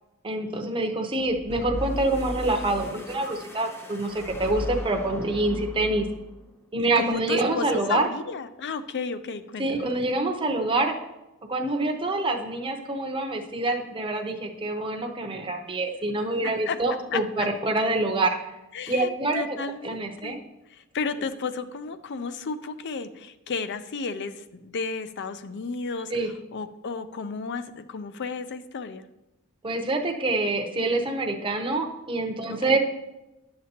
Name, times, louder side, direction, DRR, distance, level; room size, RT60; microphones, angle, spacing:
voice 1, 0.2-6.0 6.7-8.1 9.6-10.9 11.5-18.5 18.9-19.6 19.8-20.4 26.1-26.3 29.6-32.8, right 2 dB, 25° right, 3 dB, 0.8 m, -26 dB
sound 1, 1.2-6.4, equal, 10° left, 0.7 m, -36 dB
voice 2, 7.0-10.1 16.7-16.8 17.1-17.5 18.7-20.4 20.7-29.1 32.4-32.8, left 4 dB, 55° left, 12 dB, 0.5 m, -33 dB
11.0 x 6.7 x 2.9 m, 0.98 s
head